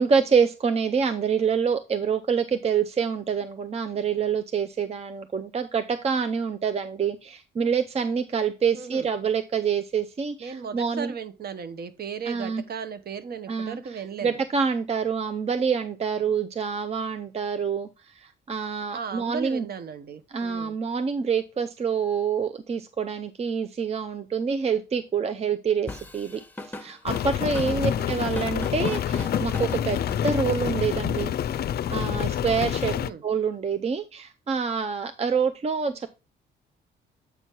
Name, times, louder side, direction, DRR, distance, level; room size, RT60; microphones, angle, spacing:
voice 1, 0.0-11.1 12.3-12.6 13.5-19.7 20.3-31.3 31.9-32.9 33.2-36.1, right 6 dB, 30° right, 0.5 m, -26 dB
voice 2, 8.7-9.1 10.4-14.3 18.9-20.7 27.7-27.9 32.9-33.2, right 6 dB, 50° right, 0.9 m, -36 dB
Drum kit / Drum, 25.9-30.7, left 1 dB, 10° left, 1.0 m, -38 dB
Rain, 27.1-33.1, left 10 dB, 55° left, 0.4 m, -27 dB
8.0 x 4.4 x 4.6 m
cardioid pair, 90°, 20 cm